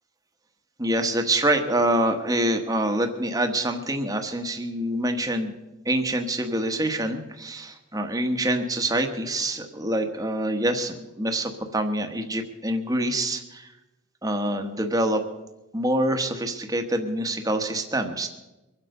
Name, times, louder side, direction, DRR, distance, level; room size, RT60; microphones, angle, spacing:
voice 1, 0.8-5.5 5.8-13.7 14.2-15.2 15.7-18.3, right 1 dB, 15° right, 5 dB, 1.2 m, -26 dB
23.5 x 8.0 x 6.6 m, 1.0 s
head